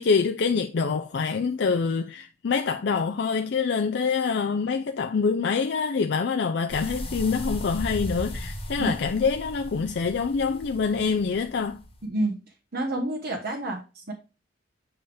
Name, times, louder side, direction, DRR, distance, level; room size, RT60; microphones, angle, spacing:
voice 1, 0.0-11.8, left 5 dB, 65° left, 0.4 m, -25 dB
sound 1, 6.7-12.0, equal, 30° left, 1.4 m, -36 dB
voice 2, 12.0-12.4 12.7-14.1, right 1 dB, 60° right, 1.1 m, -29 dB
6.9 x 5.5 x 3.4 m
head